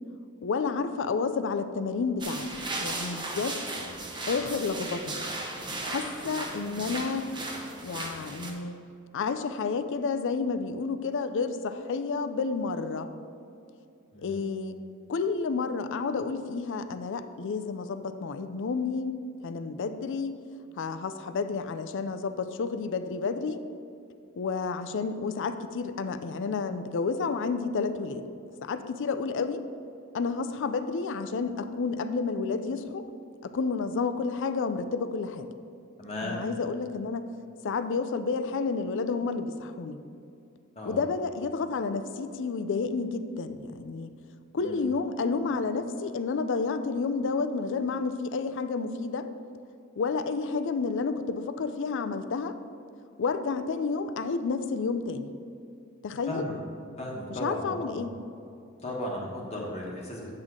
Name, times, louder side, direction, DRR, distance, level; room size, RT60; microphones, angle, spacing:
voice 1, 0.4-3.6 4.3-5.2 5.9-7.3 7.8-8.8 9.1-13.1 14.2-14.8 15.1-19.2 19.4-20.4 20.8-23.6 24.4-28.2 28.6-29.7 30.1-33.1 33.4-35.5 36.2-37.3 37.6-40.0 40.9-44.1 44.5-49.3 50.0-52.6 53.2-55.3 56.0-56.4 57.4-58.1, left 4 dB, 60° left, 10 dB, 0.4 m, -30 dB
sound 1, 2.2-8.5, right 2 dB, 20° right, 0.9 m, -36 dB
voice 2, 6.4-6.9 14.1-14.4 36.0-36.4 40.7-41.1 44.6-44.8 56.3-56.5 57.0-58.1 58.8-60.3, left 1 dB, 30° left, -3 dB, 1.1 m, -36 dB
8.7 x 6.2 x 3.7 m, 2.6 s
head